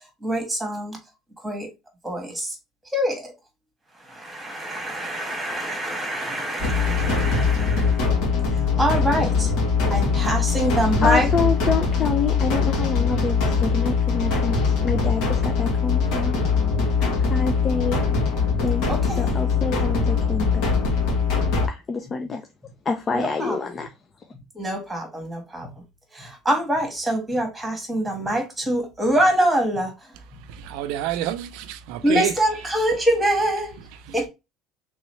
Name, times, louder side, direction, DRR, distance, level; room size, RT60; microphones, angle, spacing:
voice 1, 0.2-1.0 1.4-1.7 2.0-2.5 2.9-3.3 4.1-8.0 8.4-9.5 9.9-11.3 17.2-17.3 17.7-17.8 18.3-18.4 18.9-19.3 19.6-19.7 23.1-23.6 24.5-25.7 26.1-29.9 32.0-33.8 34.1-34.3, right 1 dB, 5° right, 1.6 m, -25 dB
sound 1, 6.6-21.7, left 5 dB, 70° left, 1.7 m, -22 dB
voice 2, 11.0-14.6 14.8-16.3 17.3-18.0 18.6-18.8 19.2-20.6 21.7-22.4 22.9-23.9, left 5 dB, 25° left, 0.5 m, -27 dB
voice 3, 30.5-32.3, right 12 dB, 80° right, 0.5 m, -28 dB
3.5 x 3.1 x 3.2 m
cardioid pair, 155°, 0 cm